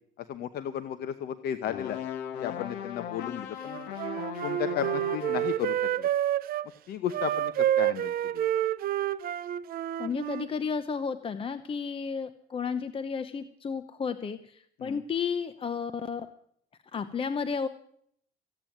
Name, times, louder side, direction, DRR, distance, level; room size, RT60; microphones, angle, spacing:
voice 1, 0.2-2.0 2.4-3.9 4.4-6.1 6.9-8.5 14.8-15.0, left 10 dB, 70° left, 10 dB, 0.9 m, -34 dB
sound 1, 1.6-5.6, left 9 dB, 90° left, 1.3 m, -38 dB
Wind instrument woodwind instrument, 3.7-6.7 7.1-10.5, right 12 dB, 60° right, 0.6 m, -29 dB
voice 2, 10.0-16.3 16.9-17.7, left 6 dB, 30° left, 10 dB, 0.8 m, -32 dB
15.5 x 8.9 x 9.1 m, 0.66 s
cardioid pair, 110°, 17 cm